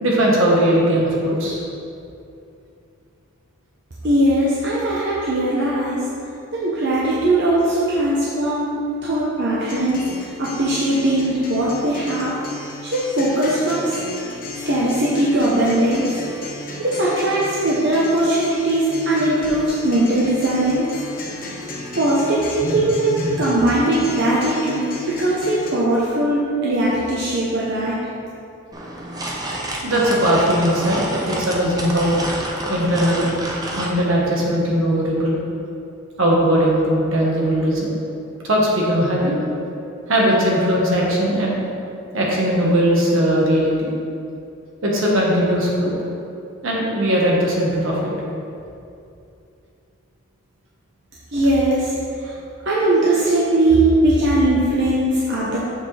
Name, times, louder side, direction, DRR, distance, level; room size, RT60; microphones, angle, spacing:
voice 1, 0.0-1.6 22.6-22.8 23.1-23.3 29.8-32.2 32.7-33.3 33.8-35.4 36.2-37.9 38.4-39.4 40.1-41.6 42.1-43.9 44.8-45.9 46.6-48.1, equal, 70° right, -4 dB, 1.4 m, -19 dB
voice 2, 4.0-6.0 6.5-8.7 9.0-12.3 12.8-14.0 14.7-16.2 16.8-20.9 22.0-28.0 51.3-51.9 52.2-52.3 52.7-55.6, right 1 dB, 55° right, -7 dB, 0.8 m, -19 dB
Acoustic guitar, 9.7-25.7, left 2 dB, 40° left, 1.0 m, -34 dB
sound 1, 28.7-33.9, right 1 dB, 15° right, 0.6 m, -29 dB
7.2 x 6.2 x 3.3 m, 2.6 s
head